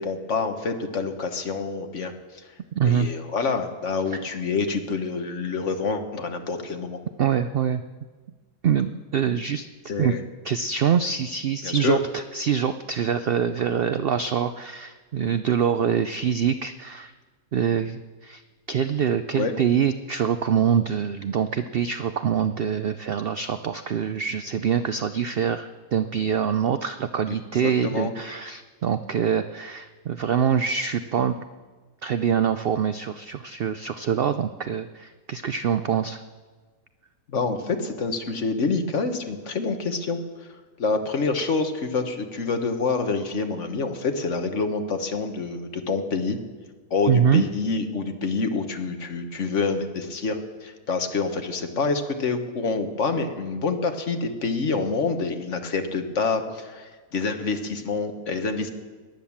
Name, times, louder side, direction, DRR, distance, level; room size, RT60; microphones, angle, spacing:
voice 1, 0.0-2.5 2.8-7.0 9.9-10.2 11.6-12.0 19.3-19.5 27.3-27.4 27.6-28.1 37.3-40.5 40.8-46.4 46.9-58.7, left 4 dB, 55° left, 6 dB, 1.5 m, -27 dB
voice 2, 2.8-3.1 4.1-4.2 7.2-7.8 8.6-9.7 10.0-10.1 10.4-17.1 17.5-18.4 18.7-31.4 32.0-36.2 47.1-47.5, right 7 dB, 65° right, 10 dB, 0.5 m, -24 dB
18.0 x 10.5 x 7.2 m, 1.4 s
omnidirectional pair, 1.6 m